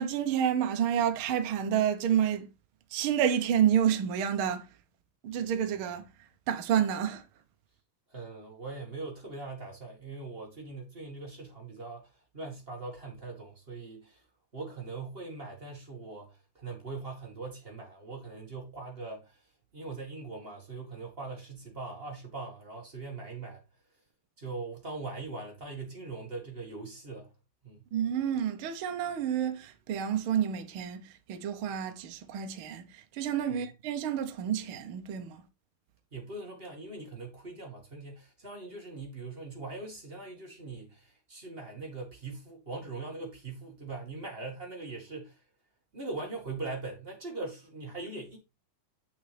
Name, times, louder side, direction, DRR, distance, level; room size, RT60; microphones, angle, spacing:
voice 1, 0.0-2.5 2.9-4.7 5.2-6.1 6.5-7.2 27.9-35.4, right 9 dB, 70° right, 1.2 m, -29 dB
voice 2, 8.1-14.2 14.5-23.6 24.4-27.3 27.6-27.8 33.5-33.7 36.1-45.4 45.9-48.4, right 3 dB, 25° right, 1.5 m, -41 dB
7.6 x 6.9 x 3.4 m
omnidirectional pair, 3.8 m